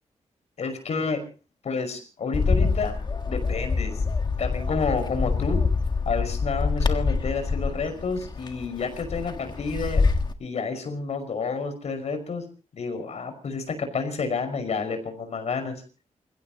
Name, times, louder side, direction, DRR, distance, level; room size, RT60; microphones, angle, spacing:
voice 1, 0.6-1.2 1.6-3.0 3.3-3.9 4.4-5.6 6.1-10.0 10.4-12.4 12.8-15.7, left 4 dB, 65° left, 7 dB, 5.6 m, -29 dB
Bird, 2.3-10.3, left 4 dB, 35° left, 1.5 m, -25 dB
29.0 x 16.5 x 3.0 m, 0.36 s
wide cardioid pair, 120°, 12 cm